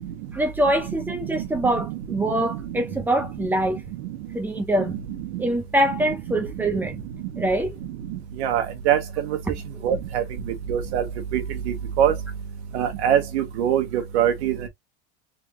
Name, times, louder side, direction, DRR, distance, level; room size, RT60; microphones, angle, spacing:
voice 1, 0.3-3.8 4.3-5.0 5.4-7.0 7.4-7.8, right 1 dB, 5° right, 0.7 m, -24 dB
voice 2, 8.4-9.0 9.8-10.2 10.7-11.0 11.3-11.4 12.0-12.1 12.7-13.8 14.1-14.5, right 9 dB, 90° right, 1.1 m, -21 dB
3.6 x 2.9 x 3.6 m
supercardioid pair, 170°, 32 cm